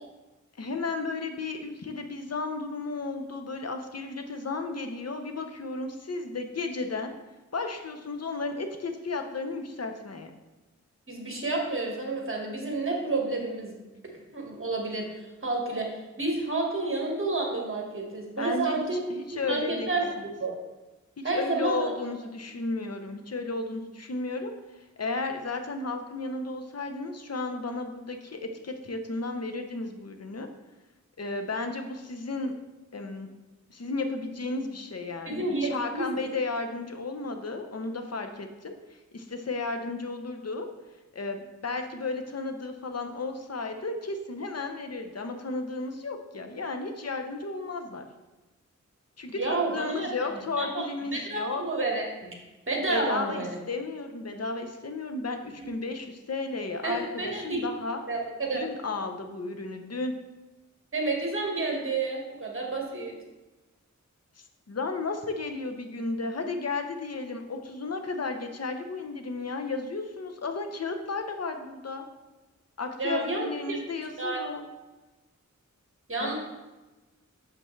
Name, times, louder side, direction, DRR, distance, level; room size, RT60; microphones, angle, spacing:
voice 1, 0.6-7.1 7.5-10.3 18.4-20.2 21.2-24.5 25.0-30.5 31.2-32.5 32.9-33.3 33.7-40.7 41.1-48.1 49.2-51.6 52.9-58.0 58.5-60.1 64.7-72.1 72.8-74.7 76.2-76.3, left 3 dB, 55° left, 5 dB, 0.8 m, -33 dB
voice 2, 11.1-13.8 14.3-19.0 19.4-20.0 20.4-20.5 21.2-21.9 35.3-36.1 49.3-50.1 50.6-52.0 52.7-53.5 56.8-57.6 58.1-58.6 60.9-63.1 73.0-73.8 74.2-74.4 76.1-76.3, right 3 dB, 45° right, 0 dB, 1.5 m, -30 dB
6.8 x 5.6 x 3.2 m, 1.1 s
wide cardioid pair, 65°, 31 cm